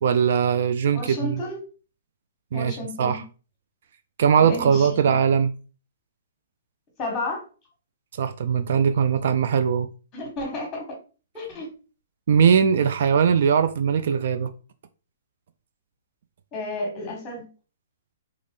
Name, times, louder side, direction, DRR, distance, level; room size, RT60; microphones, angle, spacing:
voice 1, 0.0-1.4 2.5-3.2 4.2-5.5 8.2-9.9 12.3-14.5, right 7 dB, 60° right, 0.3 m, -20 dB
voice 2, 0.9-1.6 2.5-3.2 4.4-4.9 7.0-7.4 10.1-10.8 11.3-11.7 16.5-17.5, left 2 dB, 20° left, 1.3 m, -32 dB
2.9 x 2.4 x 3.6 m
hypercardioid pair, 155°, 0 cm